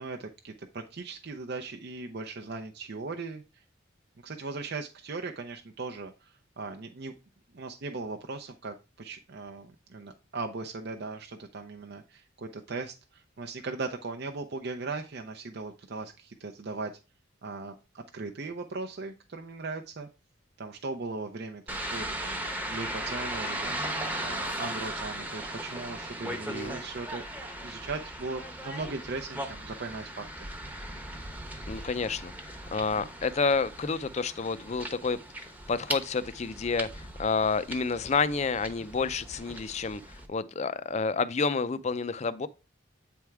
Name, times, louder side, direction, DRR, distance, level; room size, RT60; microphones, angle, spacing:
voice 1, 0.0-3.6 4.2-7.1 7.5-16.9 17.4-20.1 20.6-22.4 22.7-27.2 27.6-30.5 33.0-33.1, right 3 dB, 55° right, 0.6 m, -38 dB
sound 1, 21.7-40.3, right 1 dB, 10° right, 0.9 m, -38 dB
voice 2, 26.2-26.8 31.7-32.3 32.7-35.2 35.7-40.0 40.3-42.5, left 4 dB, 35° left, 0.4 m, -29 dB
8.6 x 3.5 x 4.6 m
head